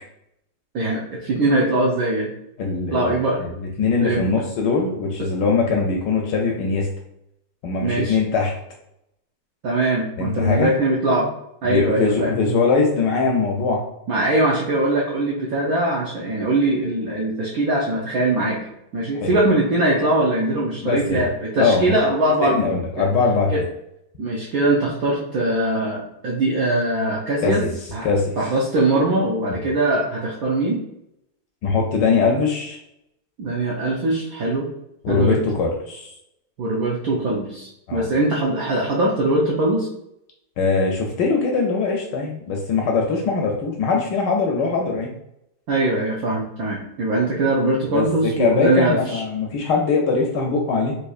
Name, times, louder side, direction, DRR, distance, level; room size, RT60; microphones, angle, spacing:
voice 1, 0.7-2.3 2.9-3.4 4.0-4.3 7.8-8.2 9.6-11.3 11.6-12.3 14.1-18.6 18.9-23.1 23.5-23.6 24.2-27.6 27.9-28.1 28.4-30.8 33.4-34.7 35.1-35.4 36.6-39.9 45.7-49.2, right 2 dB, 75° right, -4 dB, 0.8 m, -21 dB
voice 2, 2.6-6.9 7.6-8.5 10.2-10.7 11.6-13.9 19.2-19.3 20.8-21.0 21.6-21.9 22.4-23.6 27.4-27.7 28.0-28.4 31.6-32.8 35.0-36.1 37.9-38.1 40.6-45.1 47.9-51.0, left 4 dB, 75° left, 1 dB, 1.0 m, -21 dB
4.4 x 2.6 x 2.3 m, 0.79 s
omnidirectional pair, 2.2 m